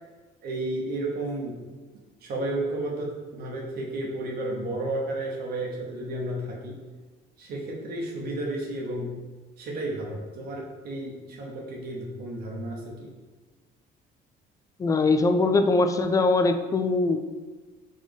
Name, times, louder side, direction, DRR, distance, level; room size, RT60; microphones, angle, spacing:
voice 1, 0.4-1.6 2.2-6.8 7.4-9.2 9.6-13.1, right 1 dB, 70° right, -2 dB, 0.9 m, -32 dB
voice 2, 14.8-17.2, left 3 dB, 20° left, 8 dB, 0.3 m, -22 dB
4.0 x 3.7 x 3.3 m, 1.3 s
cardioid pair, 110°, 17 cm